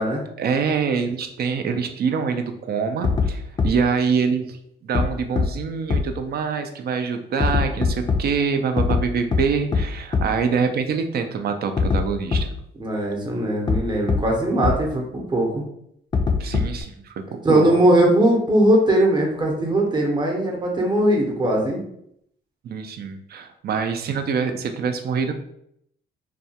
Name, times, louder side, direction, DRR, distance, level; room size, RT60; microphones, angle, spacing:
voice 1, 0.4-12.5 16.4-17.1 17.5-17.6 22.6-25.3, right 5 dB, 50° right, 7 dB, 0.4 m, -25 dB
sound 1, 3.0-3.3 3.6-3.7 4.9-5.0 5.4-5.5 5.9-6.0 7.4-8.2 8.8-9.0 9.3-9.4 9.7-9.8 10.1-10.2 11.8-12.0 12.3-12.4 13.7-13.8 14.1-14.2 14.6-14.7 16.1-16.8, left 5 dB, 25° left, 0.4 m, -20 dB
voice 2, 12.8-15.6 17.4-21.8, right 1 dB, 25° right, 0 dB, 0.7 m, -20 dB
2.3 x 2.2 x 2.7 m, 0.73 s
cardioid pair, 90°, 20 cm